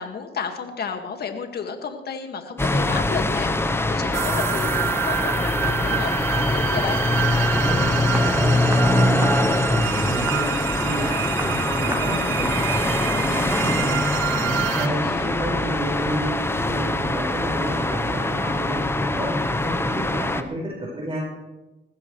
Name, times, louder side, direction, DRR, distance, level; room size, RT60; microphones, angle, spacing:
voice 1, 0.0-7.0 14.8-15.3, left 6 dB, 55° left, 5 dB, 2.0 m, -32 dB
sound 1, 2.6-20.4, left 2 dB, 10° left, 0.9 m, -23 dB
sound 2, 4.1-14.9, right 13 dB, 80° right, 0.6 m, -28 dB
Walk footsteps, 7.2-7.3 7.6-7.8 8.1-8.3 8.7-8.9 9.2-9.4 9.7-9.9 10.3-10.5 10.8-11.0 11.4-11.6 11.9-12.1 12.4-12.6 13.0-13.2 13.5-13.7, right 1 dB, 10° right, 2.0 m, -33 dB
voice 2, 7.6-14.1 14.4-21.2, right 1 dB, 30° right, -4 dB, 5.4 m, -30 dB
20.0 x 15.5 x 3.2 m, 1.1 s
cardioid pair, 90°, 20 cm